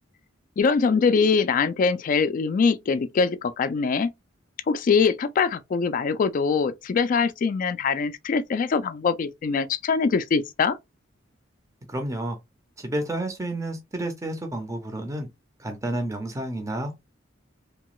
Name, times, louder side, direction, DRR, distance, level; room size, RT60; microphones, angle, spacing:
voice 1, 0.6-4.1 4.7-10.8, left 5 dB, 45° left, 0.3 m, -23 dB
voice 2, 11.9-12.4 12.8-15.3 15.6-17.0, right 1 dB, 15° right, 0.5 m, -30 dB
2.8 x 2.2 x 3.0 m
head